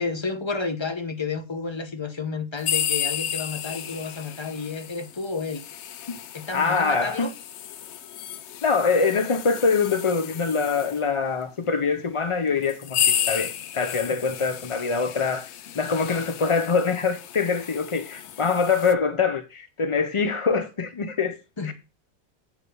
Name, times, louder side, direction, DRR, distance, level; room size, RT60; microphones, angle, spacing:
voice 1, 0.0-5.6 6.3-7.3 21.6-21.7, left 4 dB, 25° left, 0.9 m, -31 dB
sound 1, 2.6-11.0 11.8-11.9 12.6-18.9, left 9 dB, 65° left, 0.8 m, -32 dB
voice 2, 6.5-7.3 8.6-15.5 15.7-21.4 21.7-21.8, left 5 dB, 50° left, 0.4 m, -24 dB
8.6 x 4.9 x 6.8 m
omnidirectional pair, 1.4 m